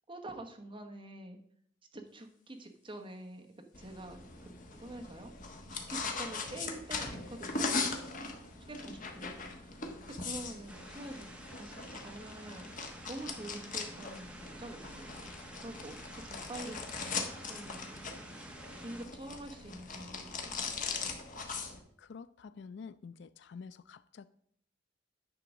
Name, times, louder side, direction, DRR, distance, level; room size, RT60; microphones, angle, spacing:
voice 1, 0.1-1.4 1.9-3.5 3.8-5.3 5.7-7.9 8.7-15.3 15.6-16.0 16.2-16.9 17.4-17.9 18.6-20.8, right 1 dB, 25° right, 1.1 m, -47 dB
sound 1, 3.7-21.8, left 4 dB, 45° left, 1.2 m, -40 dB
sound 2, 10.7-19.1, right 1 dB, 5° right, 0.9 m, -50 dB
voice 2, 22.0-24.3, left 5 dB, 65° left, 0.4 m, -48 dB
9.9 x 3.8 x 6.2 m
head